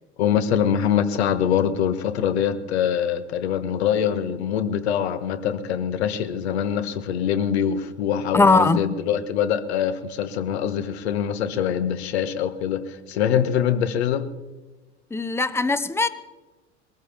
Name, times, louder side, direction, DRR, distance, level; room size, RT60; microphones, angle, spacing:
voice 1, 0.2-14.3, left 8 dB, 65° left, 1.3 m, -24 dB
voice 2, 8.3-8.8 15.1-16.1, left 3 dB, 5° left, 0.9 m, -19 dB
22.0 x 14.0 x 3.4 m
figure-of-eight pair, 75°, 35 cm